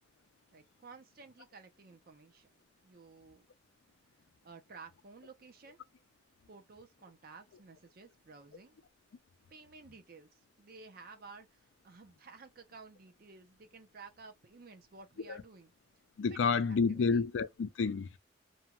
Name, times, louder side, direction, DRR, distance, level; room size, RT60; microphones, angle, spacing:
voice 1, 0.5-2.5 2.8-3.4 4.4-5.8 6.5-8.7 9.5-10.3 10.6-11.5 11.8-15.7 16.5-17.2, right 4 dB, 55° right, 0.7 m, -54 dB
voice 2, 16.2-18.2, left 5 dB, 85° left, 0.4 m, -30 dB
2.7 x 2.2 x 2.9 m
head